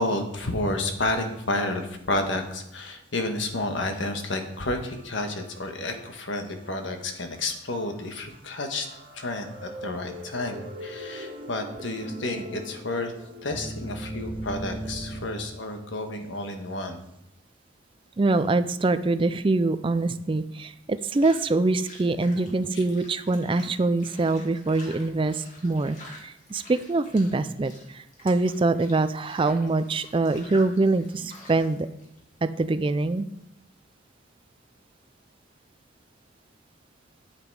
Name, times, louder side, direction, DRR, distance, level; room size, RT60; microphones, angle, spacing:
voice 1, 0.0-8.9 9.1-13.1 13.4-17.0, left 2 dB, 75° left, 5 dB, 1.4 m, -30 dB
sound 1, 4.9-6.3 6.7-6.8 8.0-15.5, right 1 dB, 75° right, 1.6 m, -39 dB
voice 2, 18.2-31.9 32.4-33.3, right 3 dB, 25° right, 13 dB, 0.4 m, -24 dB
sound 2, 18.3-33.1, left 1 dB, 40° left, 2.1 m, -49 dB
9.0 x 7.9 x 4.8 m, 0.81 s
head